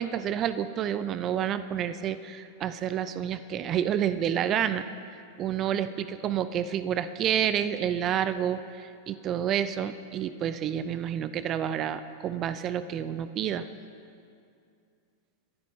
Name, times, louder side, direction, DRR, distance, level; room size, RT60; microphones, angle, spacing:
voice 1, 0.0-4.8 5.1-13.7, right 9 dB, 30° right, 13 dB, 0.4 m, -29 dB
21.5 x 11.5 x 3.6 m, 2.4 s
figure-of-eight pair, 90°, 0 cm